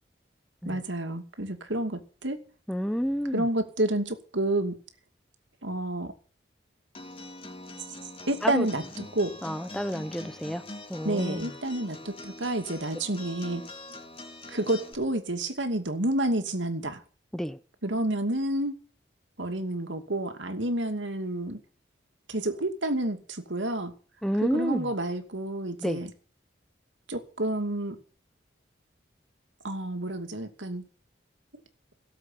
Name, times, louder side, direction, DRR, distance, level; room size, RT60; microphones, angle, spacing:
voice 1, 0.7-2.4 3.3-4.8 5.6-6.1 8.3-9.3 11.0-13.7 14.5-17.0 17.8-18.8 19.4-21.6 22.3-23.9 24.4-26.1 27.1-28.0 29.6-30.9, right 1 dB, 85° right, 2.6 m, -29 dB
voice 2, 2.7-3.5 8.4-8.7 9.4-10.6 10.9-11.5 17.3-17.6 24.2-24.9 25.8-26.0, equal, ahead, 0.7 m, -29 dB
Acoustic guitar, 6.9-14.9, left 2 dB, 30° left, 3.1 m, -43 dB
18.0 x 7.6 x 9.2 m
head